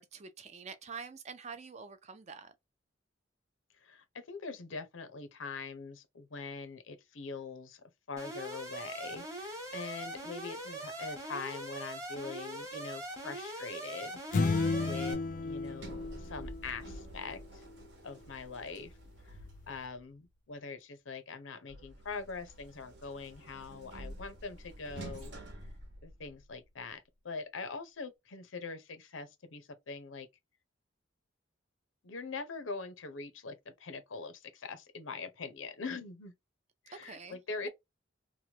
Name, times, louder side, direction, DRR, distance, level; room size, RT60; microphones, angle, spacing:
voice 1, 0.0-2.5 37.0-37.4, right 5 dB, 35° right, 0.4 m, -46 dB
voice 2, 3.8-7.8 8.1-17.7 18.0-19.0 19.3-19.4 19.7-25.3 26.0-30.3 32.0-36.3 36.8-37.7, left 4 dB, 85° left, 0.7 m, -43 dB
Alarm, 8.2-15.1, right 1 dB, 15° right, 1.0 m, -42 dB
sound 1, 14.3-17.0, left 3 dB, 45° left, 0.3 m, -32 dB
Sliding door, 15.2-20.1 21.7-26.6, right 1 dB, 60° right, 0.9 m, -49 dB
3.0 x 2.2 x 2.8 m
head